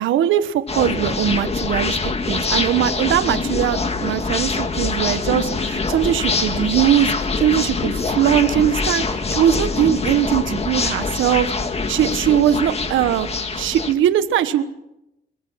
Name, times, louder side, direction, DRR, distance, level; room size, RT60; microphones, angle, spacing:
voice 1, 0.0-2.0 2.3-9.0 9.3-11.5 11.9-13.3 13.6-14.6, right 11 dB, 80° right, 11 dB, 1.3 m, -20 dB
sound 1, 0.7-13.9, left 4 dB, 30° left, 2.0 m, -24 dB
23.0 x 22.0 x 5.8 m, 0.88 s
cardioid pair, 90°, 20 cm